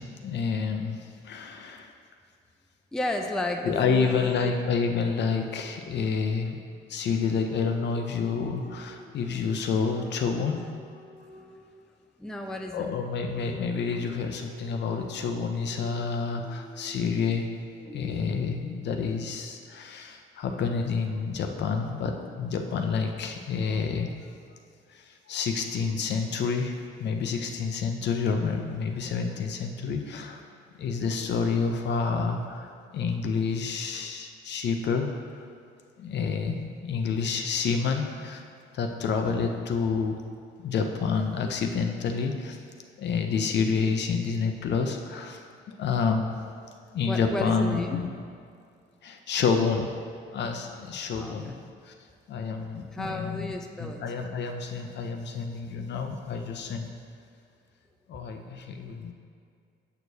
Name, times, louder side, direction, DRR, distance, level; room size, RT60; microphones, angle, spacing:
voice 1, 0.0-1.9 3.6-6.6 6.9-10.6 12.7-17.5 17.9-24.1 24.9-26.7 27.0-30.4 30.8-35.5 36.0-38.4 38.7-40.2 40.6-42.6 43.0-46.4 46.9-48.1 49.0-49.9 50.3-51.5 51.8-51.9 52.3-53.5 53.8-56.9 58.1-59.1, left 5 dB, 60° left, 4 dB, 0.6 m, -29 dB
voice 2, 2.9-4.5 11.4-11.5 12.2-12.9 47.1-48.0 51.2-51.6 52.9-54.0, left 1 dB, 5° left, 3 dB, 0.4 m, -33 dB
sound 1, 3.1-6.1 7.1-11.9 13.3-19.4, left 2 dB, 40° left, 1.3 m, -49 dB
7.7 x 4.7 x 2.7 m, 2.3 s
cardioid pair, 90°, 20 cm